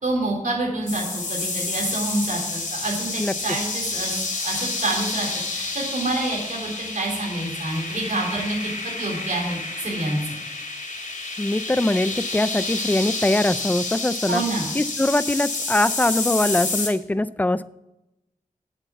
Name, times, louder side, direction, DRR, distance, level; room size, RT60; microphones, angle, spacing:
voice 1, 0.0-4.1 4.4-5.3 5.5-8.5 9.0-10.2 14.3-14.7, right 2 dB, 70° right, -2 dB, 3.7 m, -27 dB
sound 1, 0.9-16.9, left 3 dB, 75° left, 3.0 m, -29 dB
voice 2, 11.4-14.4 14.7-17.6, left 1 dB, 10° left, 15 dB, 0.4 m, -22 dB
8.3 x 8.1 x 6.8 m, 0.94 s
wide cardioid pair, 70°, 14 cm